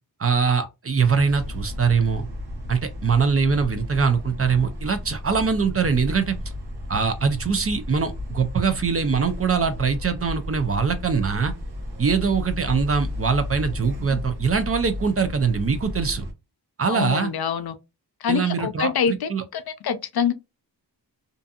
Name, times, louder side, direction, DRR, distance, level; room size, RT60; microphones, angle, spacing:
voice 1, 0.2-2.3 2.7-6.4 6.9-11.5 12.0-16.2 16.8-17.3 18.3-19.4, right 5 dB, 35° right, 0.4 m, -22 dB
sound 1, 1.0-16.3, left 1 dB, 70° right, 0.9 m, -33 dB
voice 2, 16.9-17.7 18.2-20.3, left 7 dB, 65° left, 0.5 m, -25 dB
2.6 x 2.5 x 2.3 m
wide cardioid pair, 120°, 40 cm